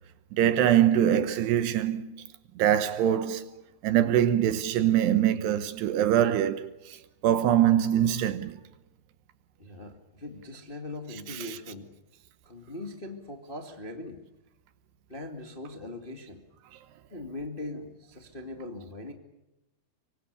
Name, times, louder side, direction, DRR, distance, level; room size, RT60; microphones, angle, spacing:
voice 1, 0.3-2.2 2.6-3.5 3.8-7.0 7.2-8.6 11.3-11.6, right 10 dB, 75° right, 3.0 m, -23 dB
voice 2, 9.6-11.9 12.4-14.2 15.1-16.4 17.1-19.1, left 2 dB, 20° left, 1.3 m, -40 dB
25.5 x 23.5 x 6.9 m
omnidirectional pair, 5.2 m